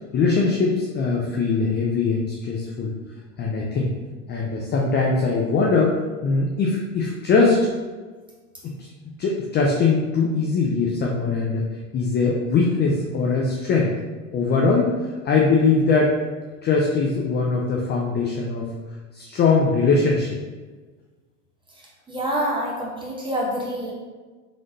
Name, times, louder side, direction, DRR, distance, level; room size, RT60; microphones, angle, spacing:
voice 1, 0.1-2.9 3.4-3.9 4.3-7.7 8.6-8.9 9.2-11.6 11.9-13.9 14.3-16.1 16.6-18.7 19.1-20.4, left 4 dB, 25° left, -1 dB, 0.4 m, -21 dB
voice 2, 21.8-23.9, equal, 10° right, -5 dB, 1.1 m, -27 dB
3.8 x 3.3 x 2.7 m, 1.3 s
supercardioid pair, 105°, 41 cm